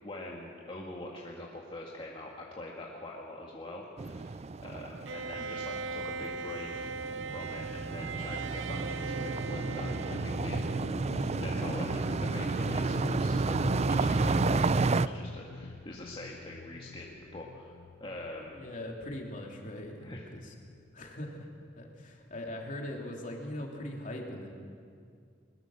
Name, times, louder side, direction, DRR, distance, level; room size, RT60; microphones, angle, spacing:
voice 1, 0.0-6.9 7.3-10.6 11.1-17.7 18.0-18.6 20.0-20.2, left 1 dB, 30° left, -3 dB, 1.9 m, -44 dB
sound 1, 4.0-15.1, right 3 dB, 35° right, 0.4 m, -31 dB
Bowed string instrument, 5.1-11.1, right 5 dB, 85° right, 0.6 m, -39 dB
sound 2, 9.4-20.9, left 4 dB, 85° left, 0.5 m, -45 dB
voice 2, 18.5-20.5 20.9-21.5 21.7-24.5, left 1 dB, 45° left, 1 dB, 3.0 m, -41 dB
22.0 x 21.0 x 6.4 m, 2.3 s
head